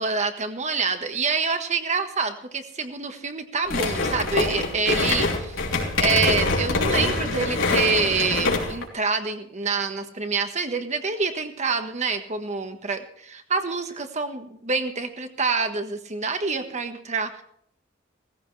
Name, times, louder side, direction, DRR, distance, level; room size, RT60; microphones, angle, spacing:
voice 1, 0.0-5.6 6.0-17.4, right 4 dB, 35° right, 7 dB, 1.4 m, -26 dB
sound 1, 3.7-8.9, left 3 dB, 90° left, 3.2 m, -24 dB
17.5 x 15.0 x 3.3 m, 0.65 s
head